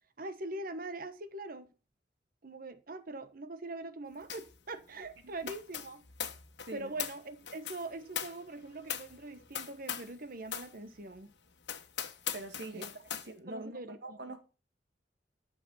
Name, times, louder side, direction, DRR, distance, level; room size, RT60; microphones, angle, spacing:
voice 1, 0.2-1.7 2.4-6.0 6.7-11.3 12.6-12.9 13.5-14.2, right 2 dB, 55° right, 1.2 m, -42 dB
sound 1, 4.3-4.6 4.8-10.2 10.5-10.7 11.2-11.3 11.6-13.3, left 9 dB, 75° left, 1.3 m, -40 dB
voice 2, 12.3-12.9 13.2-14.4, right 2 dB, 70° right, 2.1 m, -44 dB
11.5 x 6.7 x 5.6 m
head